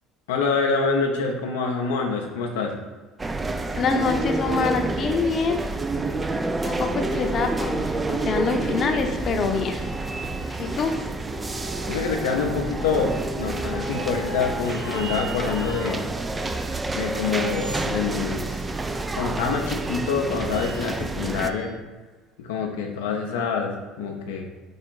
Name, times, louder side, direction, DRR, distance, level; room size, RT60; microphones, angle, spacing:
voice 1, 0.3-2.8 11.9-16.0 16.9-18.7 19.2-21.7 22.4-24.5, left 5 dB, 85° left, 1 dB, 0.5 m, -26 dB
sound 1, 3.2-21.5, right 3 dB, 20° right, 0.3 m, -29 dB
voice 2, 3.7-5.6 6.6-10.0 10.6-11.1, left 5 dB, 45° left, 4 dB, 0.7 m, -25 dB
sound 2, 8.9-21.2 21.7-21.8, equal, ahead, 1.0 m, -39 dB
sound 3, 9.8-11.0 11.7-12.6 13.0-14.3 14.6-16.1 16.4-18.6 18.9-19.1 19.9-21.7, right 5 dB, 75° right, 0.7 m, -43 dB
4.7 x 2.4 x 4.5 m, 1.3 s
hypercardioid pair, 75°, 0 cm